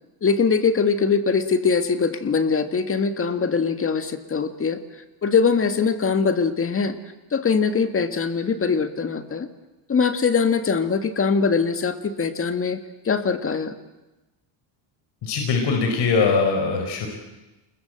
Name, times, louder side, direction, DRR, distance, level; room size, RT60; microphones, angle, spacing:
voice 1, 0.2-4.8 5.2-7.0 7.3-9.5 9.9-12.8 13.1-13.7, left 5 dB, 25° left, 9 dB, 1.8 m, -22 dB
voice 2, 15.2-17.1, left 4 dB, 55° left, 3 dB, 4.8 m, -21 dB
28.5 x 21.0 x 7.8 m, 1.1 s
cardioid pair, 125°, 49 cm